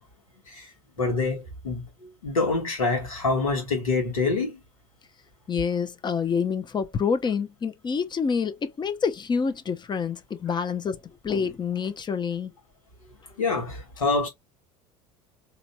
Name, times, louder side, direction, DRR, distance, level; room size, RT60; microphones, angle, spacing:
voice 1, 1.0-1.9 2.2-4.6 10.5-10.6 13.4-14.3, left 3 dB, 85° left, 1.7 m, -26 dB
voice 2, 5.5-12.5, left 6 dB, 25° left, 0.7 m, -27 dB
4.0 x 3.1 x 2.2 m
hypercardioid pair, 75°, 17 cm